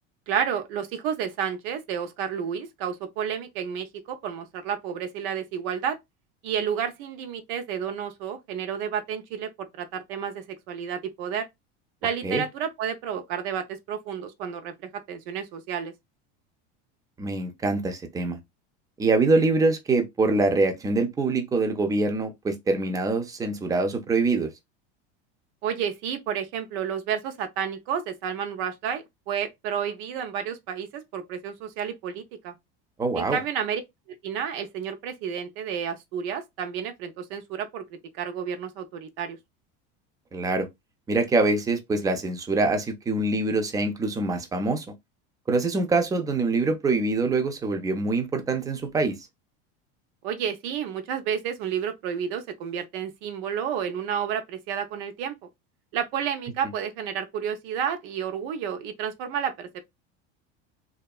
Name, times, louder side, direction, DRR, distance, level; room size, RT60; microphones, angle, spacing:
voice 1, 0.3-6.0 6.4-11.5 12.0-15.9 25.6-32.5 33.1-33.8 34.2-39.4 50.2-55.3 55.9-59.8, right 8 dB, 70° right, 0.6 m, -31 dB
voice 2, 17.2-18.4 19.0-24.5 33.0-33.4 40.3-40.7 41.1-44.8 45.5-49.2, right 3 dB, 10° right, 0.4 m, -24 dB
2.8 x 2.3 x 2.3 m
supercardioid pair, 130°, 31 cm